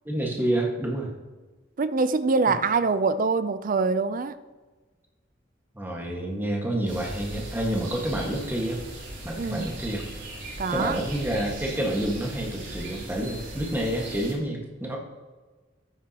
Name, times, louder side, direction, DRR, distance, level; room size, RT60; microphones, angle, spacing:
voice 1, 0.0-1.1 2.5-2.6 5.7-8.8 9.2-10.1 10.7-15.0, right 1 dB, 10° right, 1.6 m, -28 dB
voice 2, 1.8-4.4 9.4-9.7 10.6-11.0, right 4 dB, 45° right, 0.5 m, -24 dB
sound 1, 6.9-14.3, right 1 dB, 75° right, 3.4 m, -38 dB
13.5 x 10.0 x 2.9 m
head